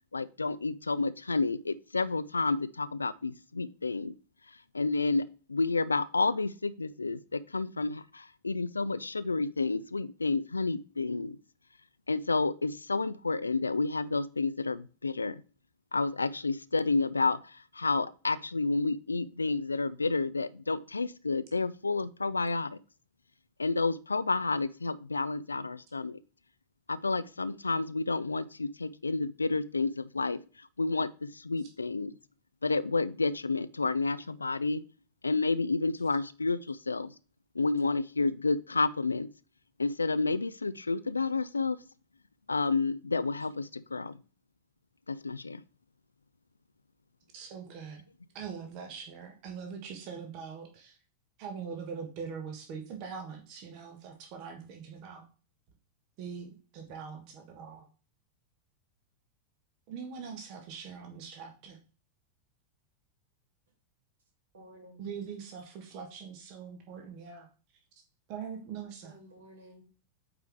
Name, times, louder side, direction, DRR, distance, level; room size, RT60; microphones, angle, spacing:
voice 1, 0.1-4.1 4.7-11.4 12.1-15.4 15.9-22.8 23.6-26.2 26.9-30.4 30.8-32.1 32.6-34.8 35.2-37.1 37.6-39.3 39.8-41.8 42.5-44.2 45.1-45.6, left 3 dB, 80° left, 17 dB, 0.4 m, -30 dB
voice 2, 47.3-48.0 48.3-51.0 51.4-55.2 56.2-57.9 59.9-61.8 65.0-67.5 68.3-69.1, right 6 dB, 45° right, 4 dB, 1.4 m, -42 dB
voice 3, 64.5-65.1 69.0-69.9, right 1 dB, 65° right, -1 dB, 3.4 m, -53 dB
8.5 x 4.6 x 3.6 m, 0.36 s
figure-of-eight pair, 90°, 0 cm